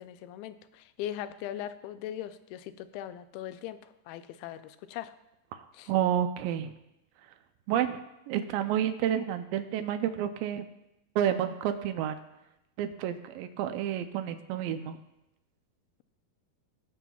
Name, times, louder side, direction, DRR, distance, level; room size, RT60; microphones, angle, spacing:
voice 1, 0.0-5.1 5.7-5.9, left 11 dB, 85° left, 12 dB, 2.4 m, -40 dB
voice 2, 5.5-6.7 7.7-8.0 8.3-10.7 11.2-12.2 12.8-15.0, right 10 dB, 80° right, 9 dB, 2.2 m, -30 dB
21.0 x 7.2 x 2.3 m, 0.90 s
omnidirectional pair, 4.4 m